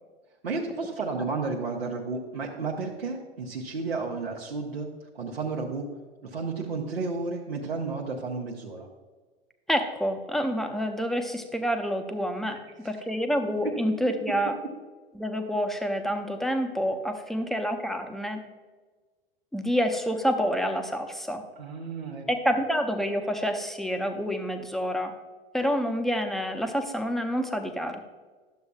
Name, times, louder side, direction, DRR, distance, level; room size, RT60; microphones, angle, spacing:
voice 1, 0.4-4.9 5.1-5.9 6.2-8.9 21.6-22.3, right 4 dB, 80° right, -2 dB, 0.9 m, -32 dB
voice 2, 9.7-12.6 12.8-14.6 15.1-18.4 19.5-21.4 22.3-25.1 25.5-28.0, equal, ahead, 6 dB, 0.6 m, -28 dB
11.5 x 7.0 x 2.4 m, 1.4 s
figure-of-eight pair, 85°, 30 cm